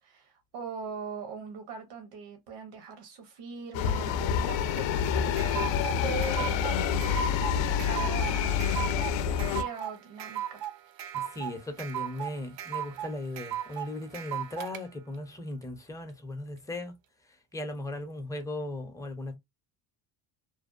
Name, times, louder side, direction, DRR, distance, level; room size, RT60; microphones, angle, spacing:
voice 1, 0.0-7.3 7.5-10.6, right 5 dB, 85° right, 0.9 m, -41 dB
sound 1, 3.7-9.6, left 8 dB, 65° left, 0.5 m, -27 dB
sound 2, 4.8-14.8, right 12 dB, 65° right, 0.5 m, -37 dB
voice 2, 11.1-16.9 17.5-19.4, left 2 dB, 5° left, 0.5 m, -37 dB
2.6 x 2.2 x 2.4 m
cardioid pair, 95°, 49 cm